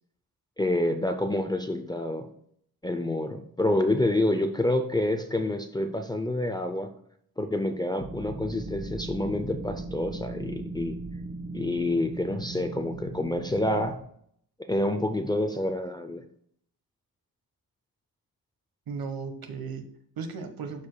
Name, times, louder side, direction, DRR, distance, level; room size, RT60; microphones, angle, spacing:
voice 1, 0.6-2.3 2.8-6.9 7.4-11.0 11.5-13.9 14.7-16.3, left 1 dB, 10° left, 5 dB, 0.5 m, -28 dB
sound 1, 8.0-14.0, right 2 dB, 30° right, 1.3 m, -38 dB
voice 2, 18.9-20.9, right 5 dB, 70° right, 7 dB, 1.2 m, -36 dB
12.5 x 4.9 x 2.2 m, 0.66 s
wide cardioid pair, 145°, 38 cm